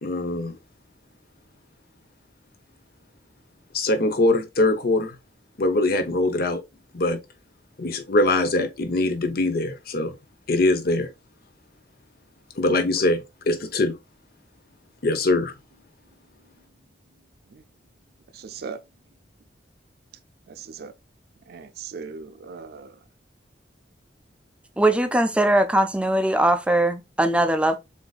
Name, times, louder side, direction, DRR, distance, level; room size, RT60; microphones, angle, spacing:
voice 1, 0.0-0.6 3.7-5.1 5.6-6.6 6.9-7.2 7.8-10.1 10.5-11.1 12.6-14.0 15.0-15.5, left 2 dB, 55° left, 0.7 m, -22 dB
voice 2, 18.3-18.8 20.5-20.9 21.5-23.0, right 5 dB, 60° right, 0.4 m, -38 dB
voice 3, 24.8-27.8, right 1 dB, 5° right, 0.5 m, -20 dB
6.8 x 2.6 x 2.3 m
head